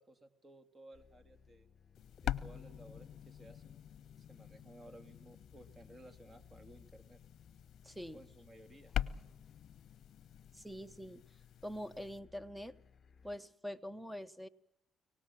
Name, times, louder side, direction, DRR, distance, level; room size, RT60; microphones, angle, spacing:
voice 1, 0.0-1.7 2.2-3.8 4.2-7.2 8.1-8.9, right 1 dB, 25° right, 8 dB, 3.0 m, -57 dB
sound 1, 0.9-13.4, left 6 dB, 45° left, 3.0 m, -63 dB
sound 2, 1.9-12.2, left 11 dB, 70° left, 0.8 m, -45 dB
voice 2, 7.8-8.2 10.5-11.2 11.6-12.7 13.2-14.5, equal, 5° right, 17 dB, 1.1 m, -44 dB
23.5 x 18.5 x 7.5 m, 0.84 s
cardioid pair, 80°, 0 cm